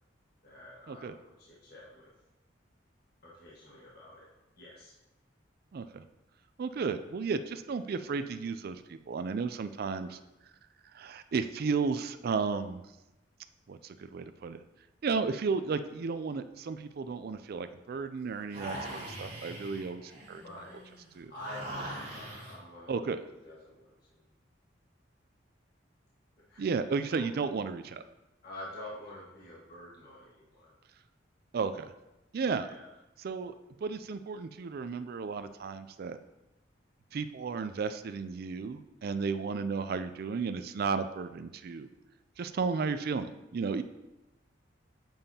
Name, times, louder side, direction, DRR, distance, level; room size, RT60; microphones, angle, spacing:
voice 1, 0.4-2.1 3.2-4.3 4.6-4.9 10.1-10.2 20.4-20.8 21.3-23.2 23.4-23.9 26.5-26.6 27.1-27.3 28.4-30.7 32.6-32.9, left 1 dB, 55° left, -6 dB, 1.6 m, -48 dB
voice 2, 5.7-6.0 6.6-10.2 10.9-12.8 13.7-14.6 15.0-20.4 21.2-21.3 22.9-23.2 26.6-28.0 31.5-31.9 32.3-32.7 33.2-33.5 33.8-36.2 37.1-41.9 42.4-43.8, right 5 dB, 55° right, 10 dB, 0.4 m, -33 dB
sound 1, 18.5-22.6, right 1 dB, 35° right, 2.8 m, -42 dB
9.0 x 7.1 x 2.8 m, 0.97 s
head